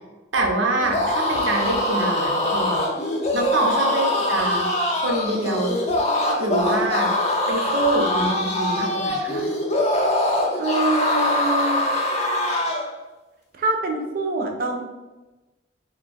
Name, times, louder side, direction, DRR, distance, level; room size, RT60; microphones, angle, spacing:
voice 1, 0.3-2.9 3.3-4.7 4.9-5.7 6.4-7.1 7.5-9.5, right 2 dB, 85° right, 1 dB, 0.7 m, -25 dB
sound 1, 0.8-12.9, left 1 dB, 35° left, 0.4 m, -23 dB
voice 2, 10.6-11.9 13.5-14.8, right 2 dB, 50° right, 2 dB, 0.5 m, -25 dB
2.6 x 2.3 x 3.9 m, 1.1 s
head